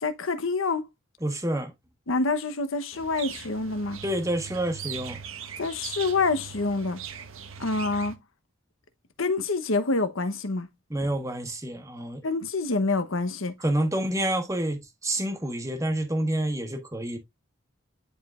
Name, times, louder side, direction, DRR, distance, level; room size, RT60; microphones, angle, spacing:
voice 1, 0.0-0.8 2.1-4.0 5.6-7.0 7.6-8.2 9.2-10.7 12.2-13.5, left 3 dB, 85° left, 0.9 m, -27 dB
voice 2, 1.2-1.7 4.0-5.2 10.9-12.3 13.6-17.2, right 1 dB, 15° right, 1.3 m, -28 dB
sound 1, 2.9-8.2, right 8 dB, 85° right, 1.1 m, -40 dB
9.9 x 4.8 x 2.4 m
head